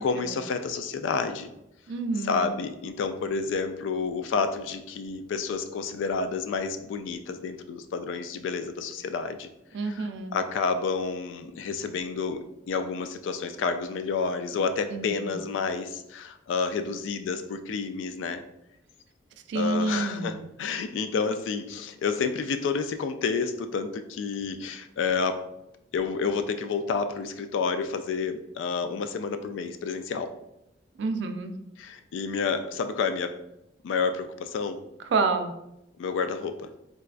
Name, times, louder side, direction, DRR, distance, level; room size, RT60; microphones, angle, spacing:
voice 1, 0.0-1.5 2.2-9.5 9.8-18.4 19.5-25.4 25.9-30.3 31.8-33.3 33.8-34.8 36.0-36.7, left 5 dB, 80° left, 9 dB, 0.3 m, -30 dB
voice 2, 1.9-2.4 9.7-10.4 14.9-15.3 19.5-20.4 31.0-31.5 35.1-35.5, right 3 dB, 65° right, 7 dB, 0.3 m, -28 dB
3.9 x 2.3 x 2.4 m, 0.85 s
head